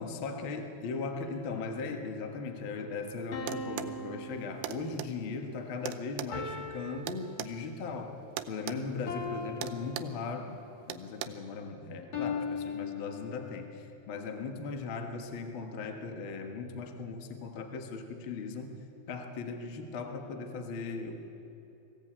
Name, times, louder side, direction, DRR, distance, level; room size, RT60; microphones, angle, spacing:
voice 1, 0.0-8.2 8.5-18.8 19.1-21.3, left 4 dB, 75° left, 5 dB, 1.1 m, -38 dB
sound 1, 1.1-2.0 3.3-5.2 6.3-7.9 9.1-10.7 12.1-13.8, left 4 dB, 50° left, 1.5 m, -40 dB
sound 2, 3.5-4.0 4.6-5.1 5.8-7.5 8.4-8.8 9.1-9.3 9.6-10.2 10.9-11.3, right 14 dB, 80° right, 2.5 m, -38 dB
22.0 x 16.0 x 8.9 m, 2.9 s
omnidirectional pair, 5.0 m